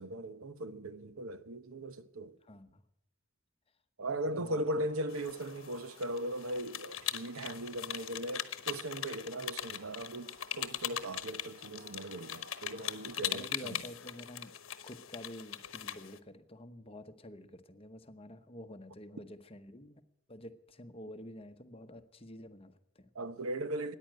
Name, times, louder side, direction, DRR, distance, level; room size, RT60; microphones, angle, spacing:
voice 1, 0.0-2.4 4.0-13.8 23.1-23.9, right 1 dB, 90° right, 1.0 m, -38 dB
voice 2, 2.4-2.8 4.3-4.7 13.3-14.6 14.8-20.0 20.3-23.1, left 1 dB, 25° left, 0.9 m, -49 dB
sound 1, 4.7-13.3, right 2 dB, 40° right, 1.3 m, -61 dB
sound 2, 5.1-16.2, left 11 dB, 70° left, 1.0 m, -41 dB
14.0 x 10.0 x 9.1 m
head